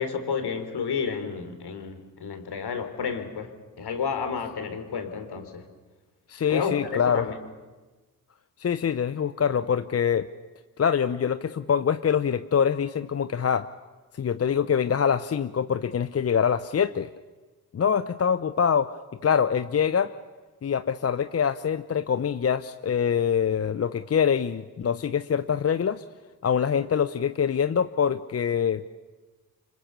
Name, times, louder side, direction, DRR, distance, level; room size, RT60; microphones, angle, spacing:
voice 1, 0.0-3.5 3.8-5.6 6.5-7.4, left 6 dB, 50° left, 8 dB, 3.7 m, -31 dB
voice 2, 6.3-7.3 8.6-10.3 10.8-13.7 14.2-17.1 17.7-19.0 19.2-20.1 20.6-26.0 26.4-28.8, left 7 dB, 30° left, 12 dB, 0.8 m, -24 dB
28.5 x 25.5 x 7.0 m, 1.2 s
hypercardioid pair, 50°, 48 cm